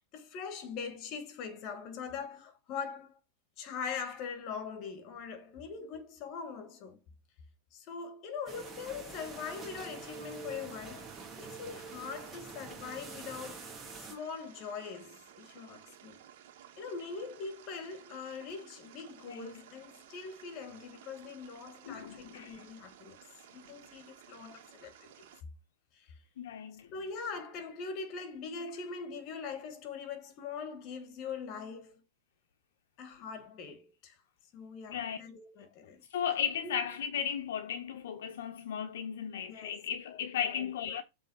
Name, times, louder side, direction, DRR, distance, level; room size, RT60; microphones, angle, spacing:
voice 1, 0.1-3.2 3.6-7.0 7.7-16.2 16.8-23.2 23.5-25.3 25.9-26.1 26.9-32.0 33.0-34.2 34.5-36.0 36.6-36.8 39.5-39.8 40.1-40.2 40.6-40.7, left 5 dB, 35° left, 2.0 m, -42 dB
sound 1, 8.5-14.2, right 4 dB, 15° right, 2.1 m, -46 dB
sound 2, 9.2-25.4, right 10 dB, 60° right, 1.9 m, -56 dB
voice 2, 19.3-19.6 21.9-22.7 26.4-26.9 34.9-35.2 36.1-41.0, left 8 dB, 80° left, 1.2 m, -36 dB
7.4 x 3.8 x 5.7 m
supercardioid pair, 150°, 0 cm